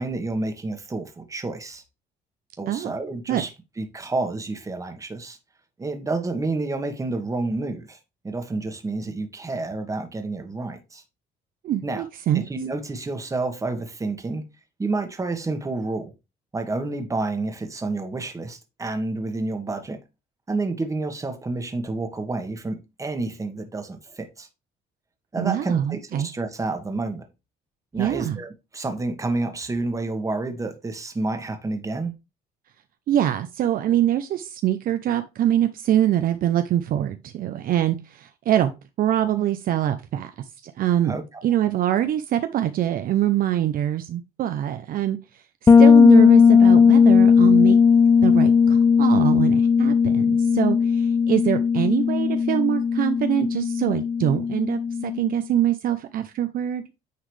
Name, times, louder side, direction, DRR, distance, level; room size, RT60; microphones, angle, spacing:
voice 1, 0.0-1.8 2.6-3.5 3.8-5.4 5.8-8.0 8.2-11.0 11.8-12.0 12.3-14.4 14.8-16.1 16.5-20.0 20.5-24.5 25.3-27.2 27.9-28.5 28.7-32.1 41.0-41.4, right 3 dB, 20° right, 1.5 m, -29 dB
voice 2, 11.6-12.4 25.4-26.3 28.0-28.4 33.1-38.7 39.0-40.3 40.6-41.2 41.4-45.2 45.8-47.8 48.2-56.8, right 11 dB, 60° right, 0.6 m, -24 dB
Bass guitar, 45.7-55.3, left 6 dB, 20° left, 0.4 m, -17 dB
9.5 x 3.9 x 3.3 m
cardioid pair, 110°, 17 cm